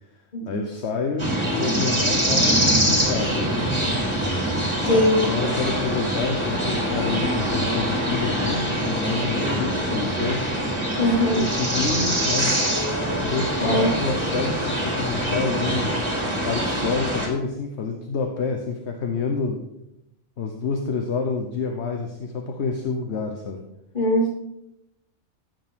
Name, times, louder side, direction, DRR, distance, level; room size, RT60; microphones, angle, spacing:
voice 1, 0.5-3.5 4.8-10.5 11.4-12.6 13.2-16.0 16.4-19.6 20.4-23.6, left 4 dB, 70° left, 4 dB, 1.2 m, -28 dB
sound 1, 1.2-17.3, right 1 dB, 25° right, 2.5 m, -24 dB
voice 2, 4.8-5.3 11.0-11.4 13.6-13.9 23.9-24.3, equal, 45° left, -2 dB, 2.7 m, -21 dB
14.0 x 7.7 x 3.7 m, 0.85 s
omnidirectional pair, 1.2 m